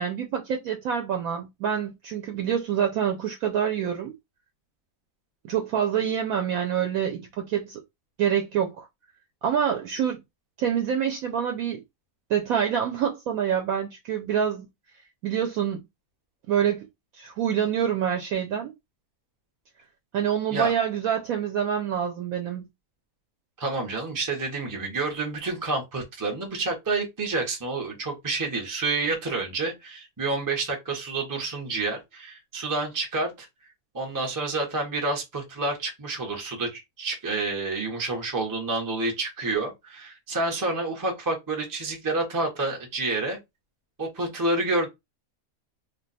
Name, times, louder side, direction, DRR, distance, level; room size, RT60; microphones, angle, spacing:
voice 1, 0.0-4.1 5.5-7.8 8.2-8.9 9.4-10.2 10.6-11.8 12.3-14.7 15.2-15.8 16.5-16.8 17.1-18.7 20.1-22.6, right 8 dB, 75° right, 1.0 m, -26 dB
voice 2, 23.6-33.5 33.9-43.4 44.0-44.9, right 3 dB, 20° right, 0.5 m, -29 dB
2.5 x 2.2 x 3.9 m
omnidirectional pair, 1.6 m